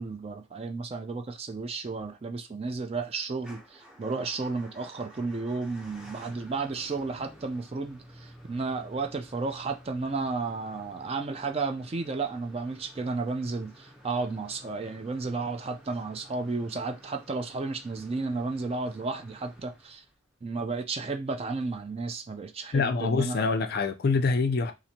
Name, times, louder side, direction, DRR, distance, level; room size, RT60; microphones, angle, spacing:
voice 1, 0.0-20.0 20.4-23.4, right 3 dB, 30° right, 0.3 m, -33 dB
Motor vehicle (road) / Engine starting / Idling, 3.4-20.3, equal, 5° right, 0.7 m, -52 dB
voice 2, 22.7-24.7, left 4 dB, 45° left, 0.4 m, -25 dB
4.2 x 2.5 x 2.8 m
head